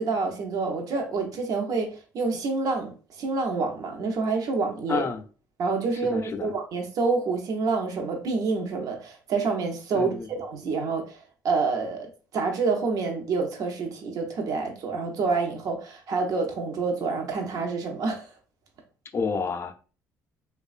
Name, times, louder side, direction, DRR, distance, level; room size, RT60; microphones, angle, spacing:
voice 1, 0.0-5.1 5.6-18.3, right 4 dB, 65° right, 0.6 m, -28 dB
voice 2, 4.9-5.2 6.1-6.5 9.9-10.3 19.1-19.7, left 5 dB, 40° left, 0.4 m, -29 dB
3.0 x 2.2 x 2.4 m
cardioid pair, 90°, 7 cm